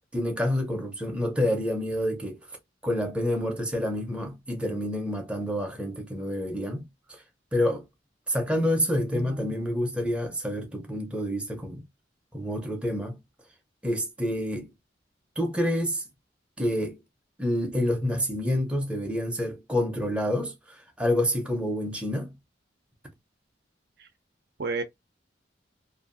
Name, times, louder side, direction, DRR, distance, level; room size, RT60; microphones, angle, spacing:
voice 1, 0.1-2.4 2.8-6.9 7.5-7.8 8.3-11.8 12.3-13.2 13.8-14.7 15.4-16.0 16.6-17.0 17.4-22.3, left 1 dB, 5° right, 0.7 m, -28 dB
voice 2, 9.1-9.7 24.0-24.1 24.6-24.8, right 3 dB, 55° right, 0.5 m, -33 dB
2.6 x 2.4 x 2.5 m
head